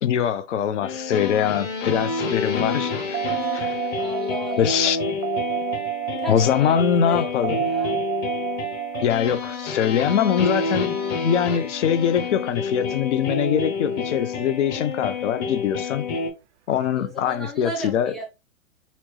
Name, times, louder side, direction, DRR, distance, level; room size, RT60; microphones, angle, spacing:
voice 1, 0.0-3.2 3.5-3.8 4.6-5.0 6.3-7.7 9.0-16.0 16.7-18.1, left 9 dB, 60° left, 0.6 m, -23 dB
sound 1, 0.8-16.3, left 4 dB, 25° left, 0.8 m, -28 dB
sound 2, 3.1-11.6 14.2-14.3, right 13 dB, 60° right, 0.5 m, -30 dB
voice 2, 4.0-4.9 6.2-6.8 7.1-7.2 7.6-8.0 16.9-18.3, right 2 dB, ahead, 0.4 m, -35 dB
4.2 x 2.0 x 3.1 m
hypercardioid pair, 120°, 41 cm